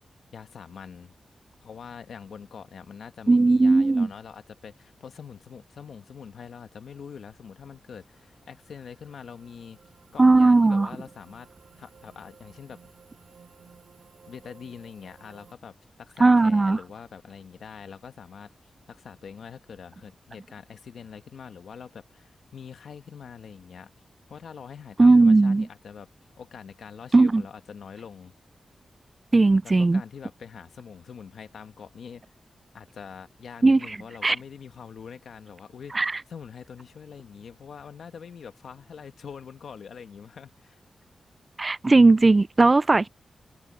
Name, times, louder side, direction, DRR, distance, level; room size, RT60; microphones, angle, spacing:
voice 1, 0.3-1.1 1.6-11.5 11.8-12.9 14.3-18.5 18.9-23.9 24.3-26.1 26.4-28.3 29.6-32.3 32.7-40.8, left 7 dB, 85° left, 1.5 m, -44 dB
voice 2, 3.3-4.1 10.2-10.9 16.2-16.8 25.0-25.7 27.1-27.4 29.3-30.0 33.6-33.8 34.2-34.4 35.9-36.1 41.6-43.1, right 3 dB, 35° right, 0.3 m, -17 dB
sound 1, 7.1-15.5, right 6 dB, 80° right, 3.4 m, -56 dB
cardioid pair, 70°, 0 cm